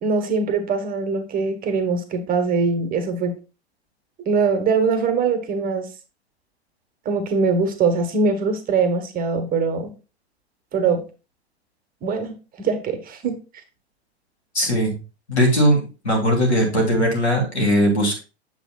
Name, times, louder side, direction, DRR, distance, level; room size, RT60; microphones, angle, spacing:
voice 1, 0.0-3.3 4.3-5.9 7.0-9.9 10.7-11.0 12.0-12.3 12.6-13.3, right 4 dB, 25° right, 7 dB, 1.3 m, -22 dB
voice 2, 14.5-14.9 15.3-18.2, equal, 85° left, 0 dB, 3.1 m, -19 dB
8.2 x 7.0 x 2.3 m, 0.31 s
figure-of-eight pair, 100°, 32 cm